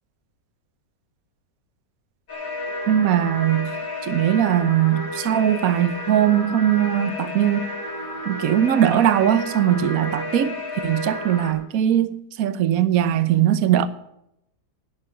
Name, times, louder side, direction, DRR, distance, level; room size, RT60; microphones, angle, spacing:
sound 1, 2.3-11.5, left 2 dB, 75° left, 6.1 m, -32 dB
voice 1, 2.9-3.7 4.0-7.7 8.3-13.9, right 10 dB, 60° right, 1.2 m, -20 dB
11.5 x 10.5 x 9.1 m
omnidirectional pair, 1.9 m